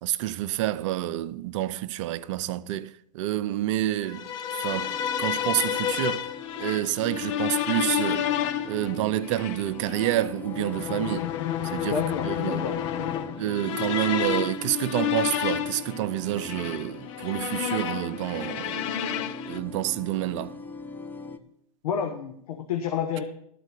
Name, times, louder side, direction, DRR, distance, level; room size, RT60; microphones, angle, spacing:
voice 1, 0.0-6.3 6.6-8.3 8.6-11.3 11.6-12.0 12.3-12.7 13.4-18.9 19.5-20.5, right 14 dB, 55° right, 0.6 m, -28 dB
sound 1, 4.1-19.6, left 10 dB, 55° left, 0.9 m, -30 dB
sound 2, 4.7-21.4, left 3 dB, 10° left, 0.8 m, -41 dB
voice 2, 11.9-13.2 21.8-23.2, left 7 dB, 70° left, 1.3 m, -30 dB
12.5 x 4.6 x 8.2 m
hypercardioid pair, 115°, 19 cm